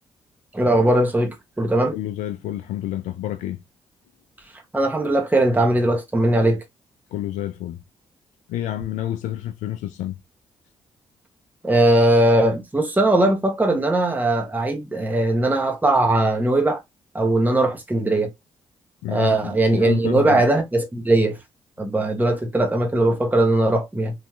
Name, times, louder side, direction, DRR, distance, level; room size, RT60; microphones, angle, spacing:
voice 1, 0.5-1.9 4.7-6.6 11.6-16.8 17.1-18.3 19.1-21.4 21.8-24.1, right 1 dB, 15° right, 1.0 m, -19 dB
voice 2, 1.9-3.6 7.1-7.8 8.5-10.2 19.0-20.4 21.8-21.9, left 13 dB, 75° left, 0.4 m, -29 dB
3.1 x 2.7 x 2.3 m
hypercardioid pair, 45°, 13 cm